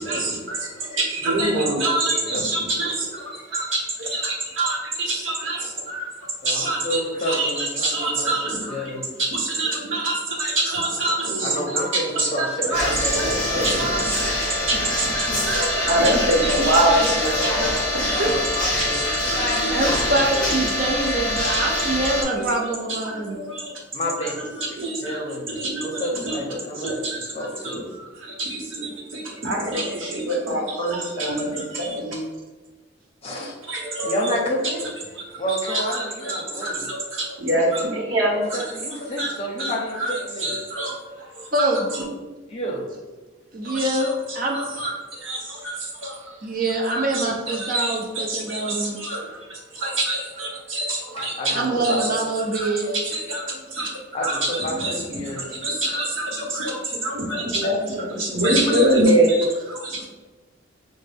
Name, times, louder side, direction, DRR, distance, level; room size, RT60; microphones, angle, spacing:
voice 1, 0.0-6.1 6.4-18.4 19.0-19.8 20.8-21.1 21.4-21.9 22.3-22.7 23.0-23.7 24.2-26.4 26.8-32.2 33.7-34.4 34.8-34.9 35.5-38.7 39.0-39.3 39.6-42.1 43.6-44.1 44.5-46.3 46.9-51.6 51.8-52.1 52.5-55.0 55.4-60.1, right 1 dB, 80° right, -1 dB, 1.0 m, -26 dB
voice 2, 6.4-9.0 11.4-13.9 18.0-19.4 20.1-20.3 23.9-24.5 25.0-27.9 33.2-33.6 34.0-34.9 35.3-36.9 38.3-40.5 42.5-42.9 51.2-52.2 54.1-55.4 60.0-60.1, equal, 30° left, -1 dB, 0.7 m, -30 dB
sound 1, 12.7-22.2, left 1 dB, 5° left, 1.0 m, -24 dB
voice 3, 19.7-23.4 41.5-41.9 43.5-44.1 44.3-44.6 46.4-49.0 51.5-53.1 60.0-60.1, right 2 dB, 45° right, -1 dB, 0.7 m, -24 dB
5.3 x 2.1 x 3.4 m, 1.2 s
head